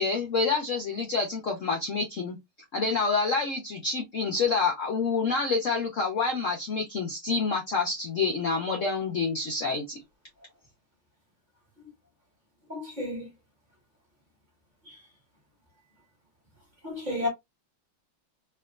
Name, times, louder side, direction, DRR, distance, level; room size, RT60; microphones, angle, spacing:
voice 1, 0.0-2.4 2.7-10.0, left 4 dB, 75° left, 0.7 m, -27 dB
voice 2, 12.7-13.3 14.9-15.0 16.8-17.3, left 2 dB, 25° right, 1.3 m, -32 dB
3.5 x 2.8 x 2.3 m
omnidirectional pair, 2.4 m